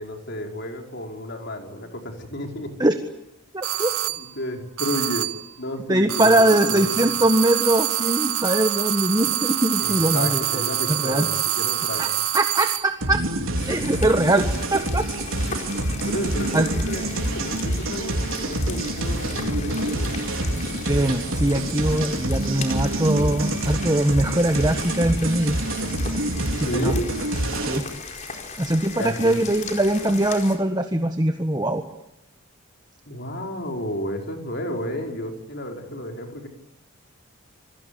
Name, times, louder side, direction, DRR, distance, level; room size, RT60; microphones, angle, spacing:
voice 1, 0.0-2.7 4.2-7.0 9.8-12.1 16.0-20.1 26.6-27.1 28.9-29.4 33.1-36.5, equal, 50° left, 3 dB, 5.0 m, -32 dB
voice 2, 3.5-3.9 5.9-10.6 10.9-11.3 12.0-12.1 12.3-13.2 13.7-15.0 16.5-16.7 20.9-25.6 26.6-26.9 27.7-27.9 28.6-31.8, right 1 dB, 20° right, 6 dB, 1.5 m, -22 dB
sound 1, 3.6-4.3 4.8-5.5 6.1-13.0, right 12 dB, 85° right, 1.7 m, -26 dB
sound 2, 13.0-27.8, right 1 dB, 70° right, 4.2 m, -27 dB
sound 3, 13.6-30.6, left 4 dB, 35° left, 4.6 m, -37 dB
27.0 x 22.0 x 8.6 m, 0.86 s
head